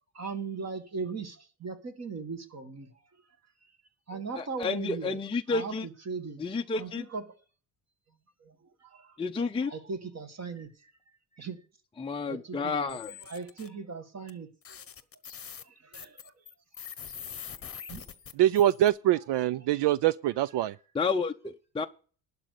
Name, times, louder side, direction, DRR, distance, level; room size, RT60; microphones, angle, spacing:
voice 1, 0.1-3.0 4.1-5.2 5.5-6.5 6.7-7.2 8.4-9.2 9.6-10.9 11.4-11.6 12.3-14.8 15.6-16.3 17.7-18.0, right 4 dB, 35° right, 2.0 m, -39 dB
voice 2, 4.4-5.8 6.4-7.0 9.2-9.7 12.0-13.1 20.9-21.9, left 4 dB, 10° left, 0.5 m, -31 dB
sound 1, 12.9-13.7 14.3-14.4 14.6-18.9, left 8 dB, 30° left, 1.0 m, -44 dB
voice 3, 18.4-20.8, right 13 dB, 65° right, 0.5 m, -24 dB
12.0 x 5.2 x 8.4 m
cardioid pair, 120°, 45 cm